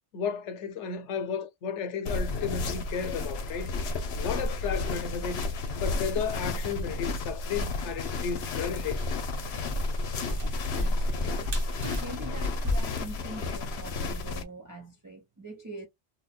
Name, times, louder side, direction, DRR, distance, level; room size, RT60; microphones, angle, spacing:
voice 1, 0.1-3.7 4.2-5.4 5.7-9.0, left 6 dB, 90° left, 1.0 m, -33 dB
sound 1, 2.1-14.4, left 3 dB, 65° left, 1.0 m, -33 dB
sound 2, 7.7-12.8, left 1 dB, 40° right, 1.0 m, -32 dB
voice 2, 10.7-11.5 12.0-15.9, right 2 dB, 20° right, 0.6 m, -43 dB
2.8 x 2.2 x 4.1 m
omnidirectional pair, 1.2 m